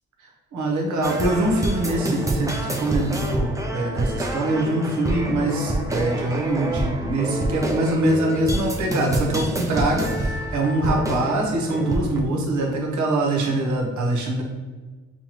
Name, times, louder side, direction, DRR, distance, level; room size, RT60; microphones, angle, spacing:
voice 1, 0.5-14.4, right 1 dB, 75° right, 0 dB, 1.0 m, -23 dB
sound 1, 1.0-12.2, right 1 dB, 10° right, 0.5 m, -27 dB
5.5 x 2.3 x 3.0 m, 1.4 s
cardioid pair, 115°, 29 cm